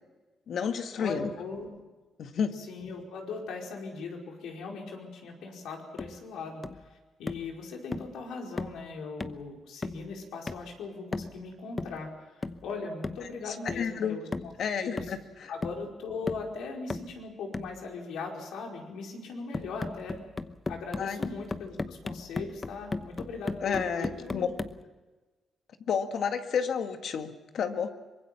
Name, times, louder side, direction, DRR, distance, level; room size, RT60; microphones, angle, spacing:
voice 1, 0.5-1.3 2.2-2.5 13.5-14.2 14.6-15.5 21.0-21.2 23.6-24.5 25.9-27.9, left 7 dB, 65° left, 6 dB, 1.9 m, -31 dB
voice 2, 1.0-1.7 2.5-14.3 14.7-15.0 15.5-20.2 20.7-24.5, left 4 dB, 85° left, 0 dB, 4.9 m, -39 dB
sound 1, 6.0-6.2 6.6-6.9 7.3-7.5 7.9-8.2 8.6-8.8 9.2-9.5 9.8-10.1 10.5-10.7 11.1-11.4 11.8-12.0 12.4-12.7 13.0-13.3 13.7-13.9 14.3-14.6 15.0-15.3 15.6-15.9 16.3-16.5 16.9-17.2 17.5-17.8 19.5-24.8, left 3 dB, 25° left, 0.9 m, -37 dB
24.5 x 22.0 x 5.9 m, 1.2 s
cardioid pair, 95°, 0 cm